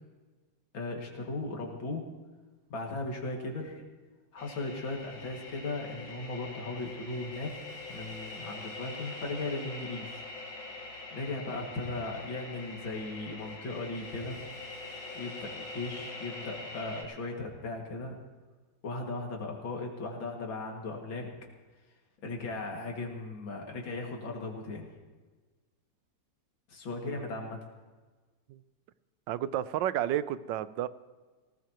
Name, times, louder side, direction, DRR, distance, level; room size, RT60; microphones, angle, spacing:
voice 1, 0.7-2.1 2.7-3.8 4.3-7.5 7.9-10.1 11.1-14.4 15.1-18.2 18.8-21.3 22.2-24.9 26.7-27.6, left 2 dB, 85° left, 1 dB, 3.0 m, -37 dB
sound 1, 4.4-17.0, left 2 dB, 70° left, 3.9 m, -43 dB
voice 2, 29.3-30.9, right 11 dB, 75° right, 15 dB, 1.3 m, -32 dB
19.5 x 18.0 x 3.0 m, 1.3 s
omnidirectional pair, 2.1 m